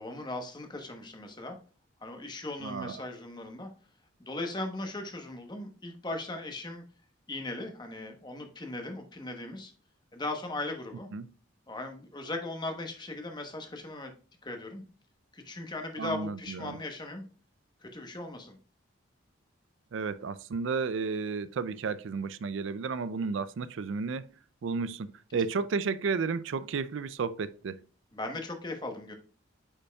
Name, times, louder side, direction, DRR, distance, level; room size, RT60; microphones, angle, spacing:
voice 1, 0.0-1.6 2.0-3.7 4.2-6.8 7.3-9.7 10.1-11.1 11.7-14.1 14.4-14.8 15.3-17.2 17.8-18.6 28.1-29.1, left 2 dB, 20° left, 1.0 m, -38 dB
voice 2, 2.6-3.0 11.1-11.3 16.0-16.8 19.9-24.3 24.6-27.8, right 5 dB, 70° right, 0.4 m, -32 dB
8.4 x 5.4 x 2.3 m
head